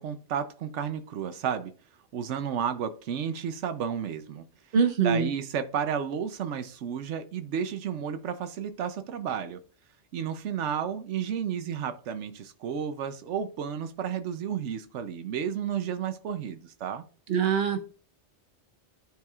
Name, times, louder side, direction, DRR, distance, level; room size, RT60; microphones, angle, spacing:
voice 1, 0.0-1.7 2.1-4.4 5.0-9.6 10.1-17.0, right 8 dB, 90° right, 9 dB, 1.0 m, -32 dB
voice 2, 4.7-5.3 17.3-17.9, right 6 dB, 60° right, 6 dB, 1.1 m, -24 dB
12.5 x 4.5 x 2.4 m, 0.39 s
omnidirectional pair, 1.2 m